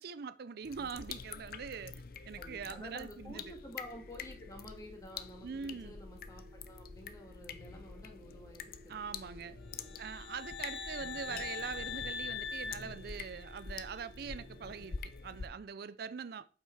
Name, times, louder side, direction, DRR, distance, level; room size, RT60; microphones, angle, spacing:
voice 1, 0.0-3.5 5.4-5.9 8.9-9.6 10.0-15.0 15.2-16.5, right 6 dB, 60° right, 0.4 m, -43 dB
sound 1, 0.6-15.5, left 5 dB, 55° left, 0.6 m, -47 dB
voice 2, 2.4-9.4 9.7-9.9, left 1 dB, 20° left, 2.1 m, -51 dB
sound 2, 3.2-15.0, equal, 35° right, 1.0 m, -59 dB
sound 3, 9.8-13.8, left 5 dB, 70° left, 0.9 m, -42 dB
7.9 x 5.7 x 4.6 m
head